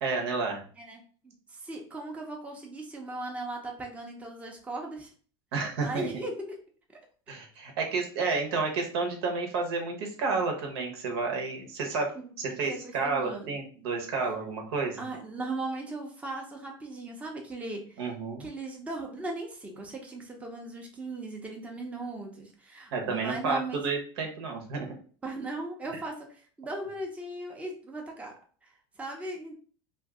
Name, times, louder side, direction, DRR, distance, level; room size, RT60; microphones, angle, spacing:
voice 1, 0.0-0.6 5.5-6.1 7.3-12.1 12.4-15.0 18.0-18.5 22.9-24.9, right 4 dB, 75° right, 2 dB, 1.0 m, -30 dB
voice 2, 0.8-5.1 5.8-6.3 12.1-13.5 14.2-14.3 15.0-18.1 18.4-23.8 25.2-28.3 28.6-29.5, right 2 dB, 10° right, 0 dB, 0.6 m, -38 dB
2.5 x 2.4 x 3.5 m, 0.42 s
supercardioid pair, 125°, 13 cm